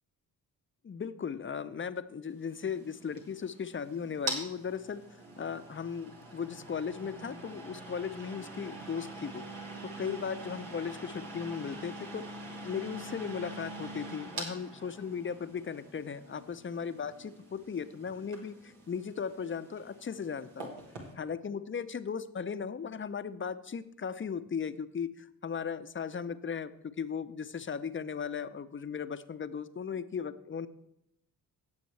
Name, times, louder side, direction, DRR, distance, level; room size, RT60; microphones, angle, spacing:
voice 1, 0.8-9.4 10.0-12.2 12.6-20.7 21.2-30.7, left 6 dB, 25° left, 13 dB, 0.7 m, -37 dB
sound 1, 2.4-21.1, right 2 dB, 80° right, 1.9 m, -45 dB
16.5 x 7.0 x 3.3 m, 0.79 s
hypercardioid pair, 40°, 50 cm